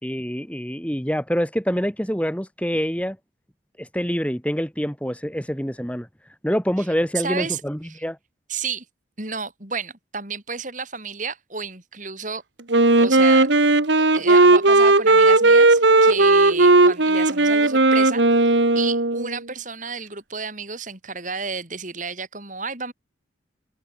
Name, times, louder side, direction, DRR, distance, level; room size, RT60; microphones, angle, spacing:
voice 1, 0.0-3.2 3.8-6.1 6.4-8.2, equal, 5° left, 4.6 m, -26 dB
voice 2, 7.2-8.0 8.5-8.9 9.2-12.4 13.0-13.5 14.0-22.9, right 5 dB, 40° right, 5.5 m, -32 dB
Wind instrument woodwind instrument, 12.7-19.4, right 2 dB, 65° right, 1.7 m, -16 dB
head